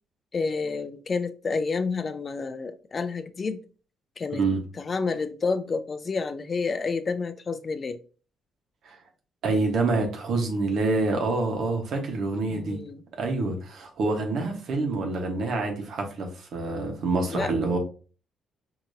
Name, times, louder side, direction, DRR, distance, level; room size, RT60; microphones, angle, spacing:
voice 1, 0.3-3.6 4.2-4.4 4.8-8.0 12.5-13.0 17.3-17.5, left 4 dB, 35° left, 0.4 m, -29 dB
voice 2, 9.4-12.8 13.2-17.8, right 3 dB, 70° right, 1.2 m, -27 dB
4.9 x 2.9 x 2.7 m
cardioid pair, 90°, 0 cm